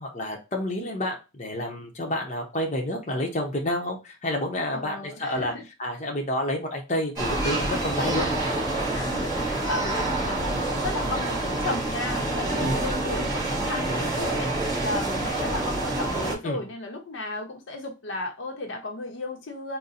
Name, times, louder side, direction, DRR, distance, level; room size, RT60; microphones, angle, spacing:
voice 1, 0.0-5.5 5.8-8.3 12.6-12.8 16.4-16.6, left 1 dB, 35° left, 0.8 m, -29 dB
voice 2, 4.7-5.6 8.9-14.5 14.8-19.8, left 2 dB, 75° left, 0.8 m, -34 dB
sound 1, 7.1-16.3, right 2 dB, 20° right, 1.4 m, -27 dB
3.9 x 2.1 x 4.1 m
head